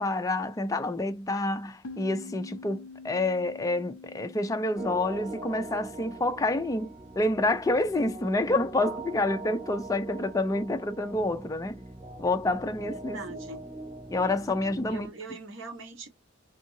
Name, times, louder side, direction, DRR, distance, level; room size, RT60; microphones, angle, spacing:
voice 1, 0.0-11.8 12.2-13.2 14.1-15.1, left 2 dB, 15° left, 0.3 m, -28 dB
sound 1, 1.8-7.2, left 4 dB, 80° left, 0.5 m, -47 dB
sound 2, 4.7-15.1, right 3 dB, 25° right, 1.5 m, -42 dB
voice 2, 12.9-13.6 14.9-16.1, right 3 dB, 65° right, 1.1 m, -42 dB
2.8 x 2.7 x 2.6 m
head